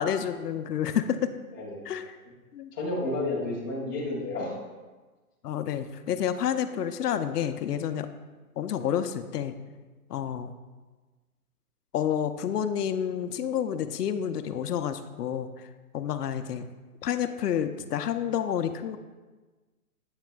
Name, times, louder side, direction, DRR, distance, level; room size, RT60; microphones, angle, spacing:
voice 1, 0.0-1.3 1.9-2.0 2.5-2.7 5.4-8.1 8.6-9.5 10.1-10.5 11.9-15.7 15.9-16.6 17.0-19.0, left 9 dB, 85° left, 10 dB, 0.6 m, -29 dB
voice 2, 1.5-1.8 2.7-4.6, left 2 dB, 15° left, -7 dB, 0.7 m, -31 dB
8.2 x 5.8 x 2.3 m, 1.3 s
hypercardioid pair, 165°, 46 cm